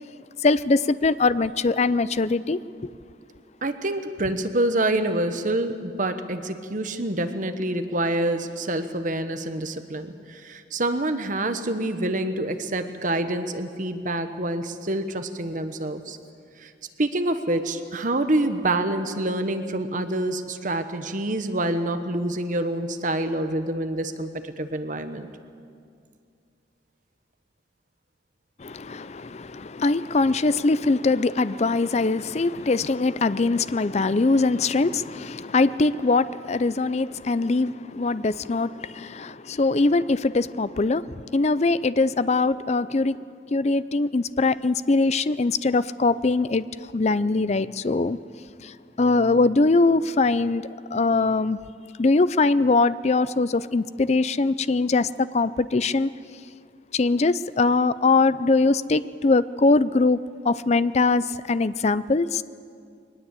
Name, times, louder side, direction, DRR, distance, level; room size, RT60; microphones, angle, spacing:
voice 1, 0.4-2.6 28.6-43.2 43.5-46.6 46.9-48.2 48.6-51.6 52.0-56.1 56.9-60.2 60.4-62.4, left 3 dB, 35° left, 0.5 m, -22 dB
voice 2, 3.6-16.2 16.6-16.7 17.0-25.3, right 1 dB, 45° right, 1.2 m, -27 dB
22.5 x 19.5 x 8.3 m
head